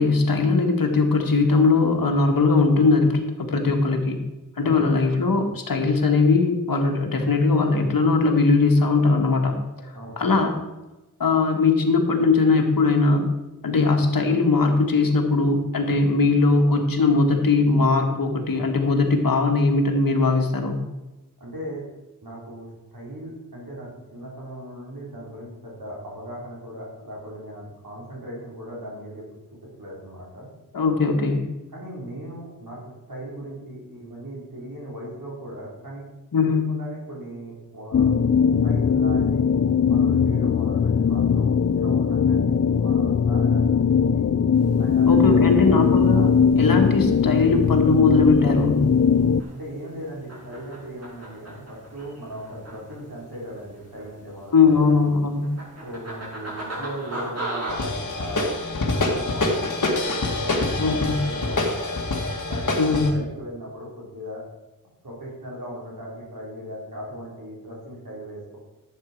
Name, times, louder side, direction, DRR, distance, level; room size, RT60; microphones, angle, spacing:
voice 1, 0.0-4.2 4.6-9.6 10.2-10.5 11.2-13.3 13.6-20.8 30.7-31.5 36.3-36.7 45.1-48.8 54.5-55.5 60.8-61.2 62.8-63.1, left 3 dB, 80° left, 2 dB, 1.6 m, -20 dB
voice 2, 21.4-21.8 22.2-29.2 29.8-30.5 31.7-32.8 33.1-36.1 36.4-38.1 38.6-39.4 39.9-44.2 44.8-45.7 49.5-54.8 55.8-59.8 60.2-62.0 62.5-62.8 63.1-64.4 65.0-68.6, right 1 dB, 85° right, -5 dB, 4.4 m, -38 dB
sound 1, 37.9-49.4, left 6 dB, 45° left, 0.4 m, -20 dB
sound 2, 44.5-57.8, right 2 dB, 50° right, 3.7 m, -40 dB
sound 3, 57.7-63.1, left 2 dB, 60° left, 1.8 m, -25 dB
11.5 x 8.1 x 4.6 m, 1.0 s
wide cardioid pair, 85°, 34 cm